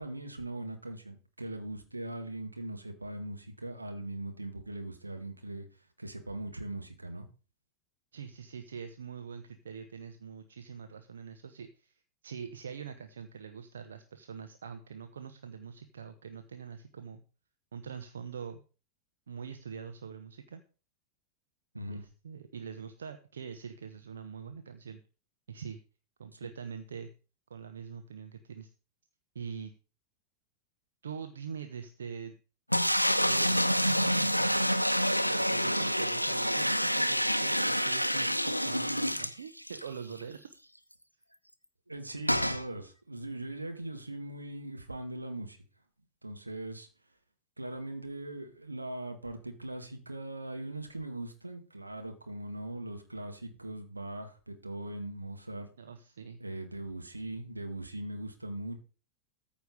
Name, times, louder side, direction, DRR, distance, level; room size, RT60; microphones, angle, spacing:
voice 1, 0.0-5.7 6.0-7.3 21.7-22.0 26.3-26.4 41.9-45.6 46.2-46.9 47.6-55.7 56.4-58.8, right 1 dB, 85° right, 5 dB, 1.7 m, -40 dB
voice 2, 8.1-17.2 17.7-18.6 19.3-20.6 21.9-25.0 25.5-25.8 26.2-27.1 27.5-28.7 29.3-29.7 31.0-32.3 33.2-34.8 35.2-40.6 55.8-56.4, right 6 dB, 65° right, 8 dB, 0.8 m, -44 dB
sound 1, 32.7-39.9 40.2-40.3 40.5-40.6 42.3-42.6, equal, 90° left, 0.5 m, -27 dB
14.0 x 5.1 x 5.2 m, 0.36 s
figure-of-eight pair, 90°, 0 cm